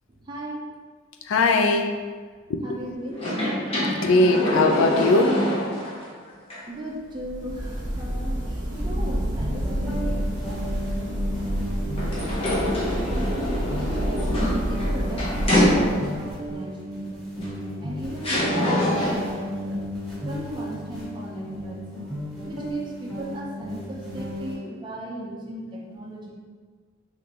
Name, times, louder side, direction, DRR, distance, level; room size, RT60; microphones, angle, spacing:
voice 1, 0.2-0.7 2.6-3.3 6.7-13.5 14.0-14.4 14.7-19.8 20.2-21.9 22.4-26.3, equal, 25° right, -3 dB, 0.5 m, -37 dB
voice 2, 1.3-1.9 2.5-2.8 3.8-5.4, left 2 dB, 75° left, 5 dB, 0.4 m, -20 dB
sound 1, 3.1-6.1 6.5-6.6 12.0-16.3 17.4-17.5 18.2-19.4, left 1 dB, 30° left, 0.8 m, -25 dB
sound 2, 7.1-16.3, equal, 40° right, 0.8 m, -29 dB
sound 3, 8.7-24.5, equal, ahead, 1.4 m, -34 dB
3.6 x 3.2 x 2.9 m, 1.5 s
head